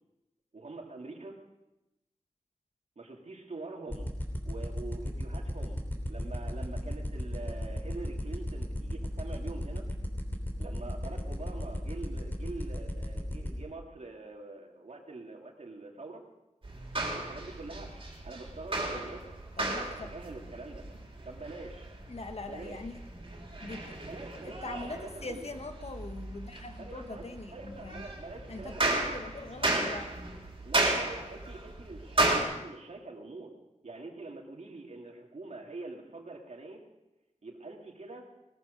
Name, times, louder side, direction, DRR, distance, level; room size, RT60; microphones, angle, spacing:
voice 1, 0.5-1.4 3.0-4.1 4.4-9.9 10.6-16.2 17.1-19.3 19.7-20.9 21.2-21.9 22.4-22.8 24.0-25.5 26.8-27.2 27.5-29.0 30.6-33.5 33.8-36.8 37.4-38.3, right 3 dB, 65° right, 1 dB, 2.6 m, -44 dB
sound 1, 3.9-13.5, left 1 dB, 15° left, 3.2 m, -33 dB
sound 2, 16.6-32.4, right 2 dB, 45° right, 3.8 m, -34 dB
voice 2, 19.6-20.1 22.1-23.0 23.6-23.8 24.4-28.1 28.5-30.1, left 3 dB, 55° left, 7 dB, 1.3 m, -42 dB
19.0 x 13.5 x 5.2 m, 0.99 s
wide cardioid pair, 95°, 13 cm